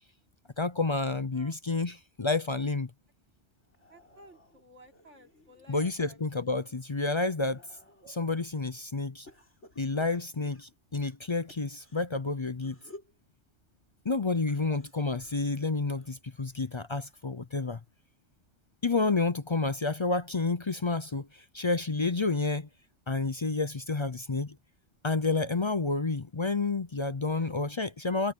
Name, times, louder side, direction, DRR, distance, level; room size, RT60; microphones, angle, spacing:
voice 1, 0.6-2.9 5.7-7.6 8.1-9.3 9.8-12.8 14.0-17.8 18.8-22.7 23.1-24.6 25.0-28.3, left 3 dB, 35° left, 0.5 m, -30 dB
sound 1, 3.6-5.9 6.4-8.4 9.3-12.1 12.6-13.2 14.4-17.3 17.6-18.0 19.2-19.3, left 1 dB, 70° left, 7.1 m, -56 dB
voice 2, 3.9-6.3 27.3-27.5, right 2 dB, 85° right, 3.8 m, -55 dB
omnidirectional pair, 1.2 m